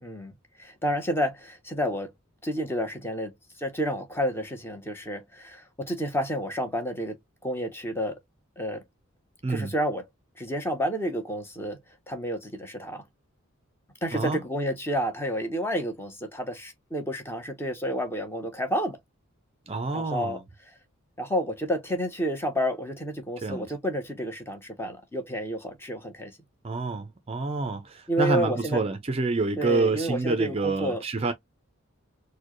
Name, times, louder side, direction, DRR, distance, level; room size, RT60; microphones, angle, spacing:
voice 1, 0.0-2.1 2.4-3.3 3.6-7.2 7.4-8.2 8.6-8.8 9.5-10.0 10.4-11.8 12.1-13.0 14.0-19.0 19.9-20.4 21.2-26.3 28.1-28.8 29.6-31.0, equal, 10° left, 0.8 m, -30 dB
voice 2, 14.1-14.4 19.7-20.4 23.4-23.7 26.6-31.3, right 3 dB, 30° right, 0.4 m, -27 dB
4.3 x 2.2 x 3.0 m
head